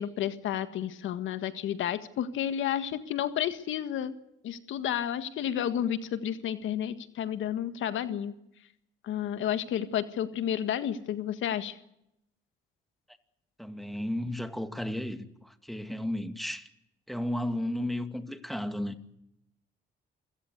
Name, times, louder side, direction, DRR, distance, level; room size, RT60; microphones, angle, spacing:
voice 1, 0.0-4.1 4.4-8.3 9.0-11.7, left 10 dB, 80° left, 1.7 m, -31 dB
voice 2, 13.6-16.7 17.1-19.0, left 1 dB, ahead, 2.3 m, -33 dB
27.5 x 17.0 x 8.1 m
cardioid pair, 90°, 20 cm